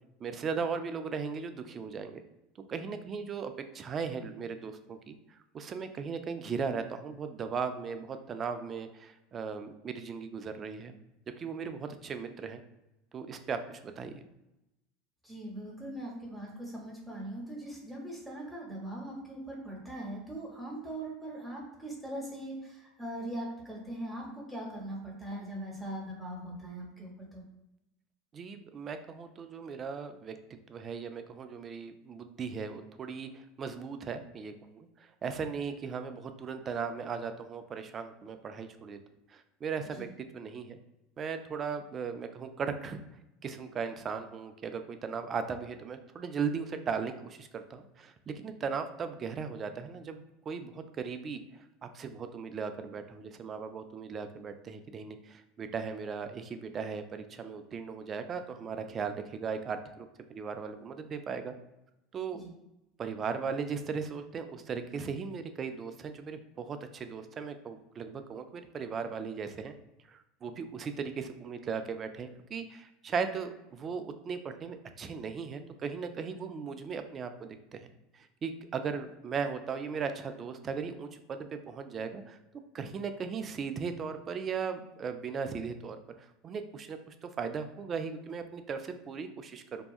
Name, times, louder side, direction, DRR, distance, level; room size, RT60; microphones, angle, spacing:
voice 1, 0.2-2.2 2.7-10.9 11.4-12.6 13.1-14.2 28.3-30.3 30.7-39.0 39.3-40.8 41.2-43.0 43.4-51.4 51.8-61.5 62.1-62.4 63.0-69.7 70.1-77.9 78.1-82.4 82.7-89.8, right 5 dB, 35° right, 8 dB, 0.3 m, -37 dB
voice 2, 15.2-27.4 39.9-40.1 62.3-62.5, right 1 dB, ahead, -4 dB, 0.9 m, -41 dB
2.7 x 2.2 x 2.3 m, 0.93 s
hypercardioid pair, 80°, 0 cm